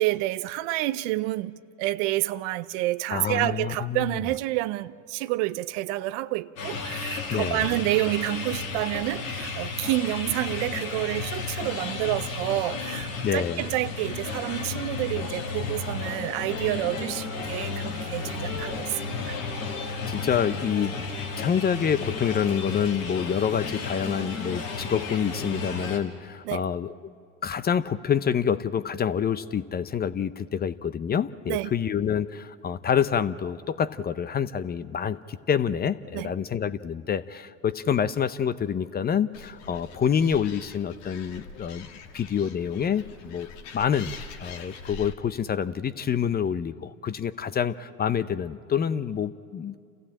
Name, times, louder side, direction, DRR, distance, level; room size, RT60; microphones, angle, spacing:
voice 1, 0.0-19.4 26.5-26.7 31.5-31.7 36.1-36.3, right 17 dB, 60° right, 0.7 m, -29 dB
voice 2, 3.1-4.1 7.3-7.7 13.2-13.6 19.8-21.0 21.4-27.1 27.4-41.9 42.1-43.5 43.7-44.1 44.4-49.8, left 8 dB, 25° left, 0.6 m, -27 dB
sound 1, 6.6-26.0, left 4 dB, 85° left, 2.6 m, -33 dB
Animal, 39.3-45.1, left 5 dB, 60° left, 1.9 m, -44 dB
28.0 x 15.0 x 8.7 m
hypercardioid pair, 85°, 40 cm